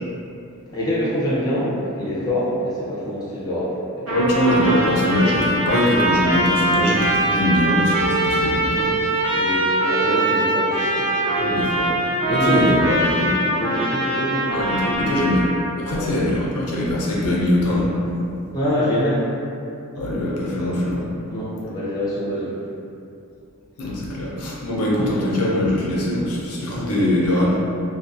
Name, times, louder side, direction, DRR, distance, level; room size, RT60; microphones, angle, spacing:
voice 1, 0.7-4.2 8.7-9.0 9.3-11.2 12.3-12.9 13.4-14.7 15.9-16.1 18.5-19.3 21.3-22.6 26.5-26.6, equal, 15° left, -8 dB, 0.5 m, -25 dB
voice 2, 4.1-8.9 11.3-11.9 12.3-13.3 14.5-15.5 15.8-18.1 19.9-21.1 23.8-27.6, left 1 dB, 80° left, -5 dB, 0.5 m, -22 dB
Trumpet, 4.1-15.7, right 1 dB, 70° right, 0.9 m, -22 dB
2.4 x 2.2 x 2.5 m, 2.6 s
head